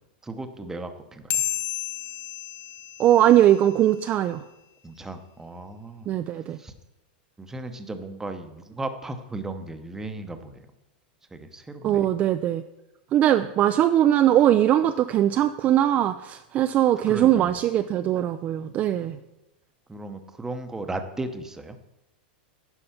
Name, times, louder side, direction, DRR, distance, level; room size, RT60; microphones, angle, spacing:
voice 1, 0.2-1.4 4.8-6.1 6.6-6.7 7.4-10.6 11.3-12.1 17.1-17.6 19.9-22.0, right 2 dB, 10° right, 8 dB, 0.8 m, -36 dB
sound 1, 1.3-4.1, left 12 dB, 35° left, 0.6 m, -32 dB
voice 2, 3.0-4.4 6.1-6.6 11.8-12.6 13.1-19.2, right 12 dB, 30° right, 9 dB, 0.3 m, -20 dB
10.0 x 5.4 x 5.8 m, 0.94 s
supercardioid pair, 140°, 5 cm